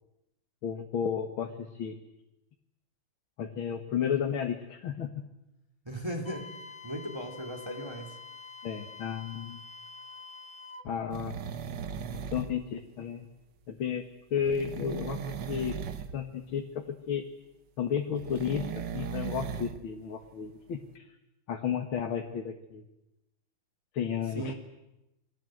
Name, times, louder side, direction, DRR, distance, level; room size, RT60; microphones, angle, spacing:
voice 1, 0.6-2.0 3.4-5.3 8.6-9.6 10.8-11.3 12.3-13.3 13.7-15.8 16.1-17.3 17.8-21.1 21.5-22.8 23.9-24.5, left 8 dB, 90° left, 4 dB, 2.4 m, -33 dB
voice 2, 5.8-6.5 6.8-8.2 24.3-24.5, equal, 10° right, 3 dB, 3.5 m, -37 dB
Wind instrument woodwind instrument, 6.2-10.9, left 4 dB, 25° left, 1.3 m, -47 dB
sound 1, 11.1-12.6 14.4-16.2 18.1-19.8 20.2-20.3, right 7 dB, 65° right, 1.8 m, -37 dB
28.0 x 23.0 x 7.9 m, 0.92 s
omnidirectional pair, 2.2 m